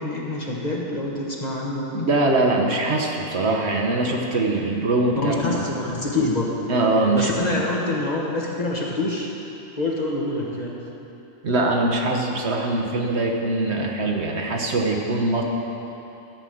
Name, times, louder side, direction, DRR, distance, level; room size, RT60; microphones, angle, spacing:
voice 1, 0.0-2.1 5.2-6.5 7.1-9.3 9.8-10.8, left 2 dB, 35° left, -3 dB, 1.3 m, -26 dB
voice 2, 2.0-5.7 6.7-7.6 11.4-15.4, right 2 dB, 55° right, 1 dB, 1.2 m, -22 dB
13.5 x 5.3 x 7.7 m, 2.9 s
omnidirectional pair, 1.4 m